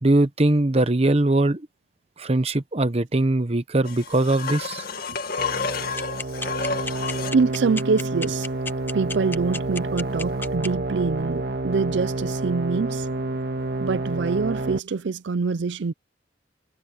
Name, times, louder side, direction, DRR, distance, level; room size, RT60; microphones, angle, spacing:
voice 1, 0.0-1.6 2.2-4.8, right 2 dB, 35° right, 1.0 m, -21 dB
sound 1, 3.8-7.4 10.3-10.4, left 5 dB, 55° left, 2.0 m, -30 dB
sound 2, 5.4-14.8, right 2 dB, 60° right, 1.8 m, -29 dB
sound 3, 6.0-10.7, left 3 dB, 10° left, 0.7 m, -31 dB
voice 2, 7.3-8.5 8.9-13.1 13.8-15.9, right 4 dB, 75° right, 0.5 m, -25 dB
head